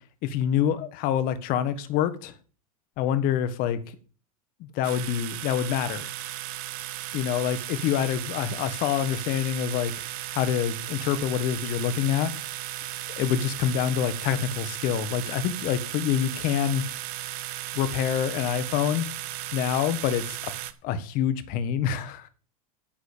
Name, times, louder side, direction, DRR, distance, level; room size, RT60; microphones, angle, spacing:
voice 1, 0.2-2.3 3.0-3.8 4.7-6.1 7.1-9.9 10.3-12.3 13.2-16.8 17.7-19.1 19.5-20.2 20.8-22.3, left 9 dB, 50° left, 1.6 m, -26 dB
sound 1, 4.8-20.7, right 14 dB, 55° right, 1.1 m, -36 dB
10.5 x 7.9 x 6.9 m
hypercardioid pair, 95°, 19 cm